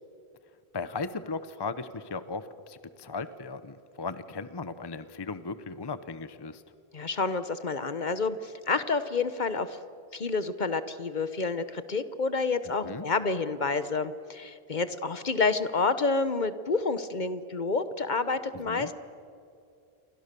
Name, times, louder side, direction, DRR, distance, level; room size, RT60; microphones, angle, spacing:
voice 1, 0.7-6.6 12.8-13.1 18.6-18.9, left 4 dB, 25° left, 13 dB, 0.8 m, -37 dB
voice 2, 6.9-9.8 10.1-18.9, left 4 dB, 50° left, 13 dB, 1.1 m, -29 dB
28.5 x 24.0 x 6.8 m, 2.5 s
omnidirectional pair, 1.0 m